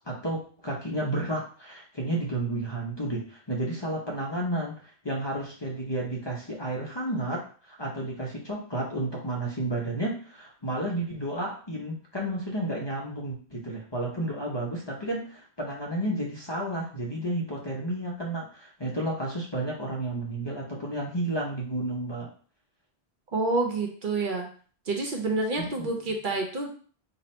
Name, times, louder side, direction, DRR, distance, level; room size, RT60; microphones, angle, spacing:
voice 1, 0.1-22.3 25.6-25.9, right 1 dB, 30° left, -3 dB, 0.7 m, -32 dB
voice 2, 23.3-24.5 24.9-26.7, right 3 dB, 55° right, 1 dB, 0.8 m, -28 dB
2.8 x 2.7 x 4.2 m, 0.43 s
omnidirectional pair, 1.1 m